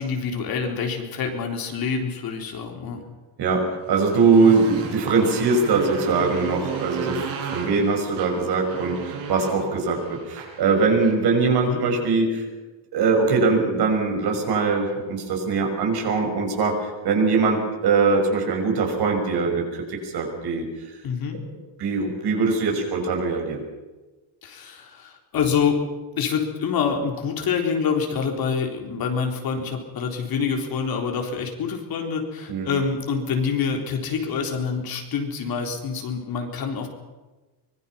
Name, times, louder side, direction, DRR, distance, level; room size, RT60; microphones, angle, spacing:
voice 1, 0.0-3.0 4.4-4.6 11.7-11.8 21.0-21.4 24.4-25.8 26.2-36.9, left 6 dB, 50° left, 3 dB, 4.0 m, -26 dB
voice 2, 3.4-12.4 12.9-20.7 21.8-23.6 32.5-32.7, right 4 dB, 55° right, 2 dB, 6.2 m, -22 dB
Motorcycle, 3.9-11.3, right 5 dB, 85° right, 6.7 m, -34 dB
25.0 x 21.0 x 5.8 m, 1.2 s
cardioid pair, 155°, 46 cm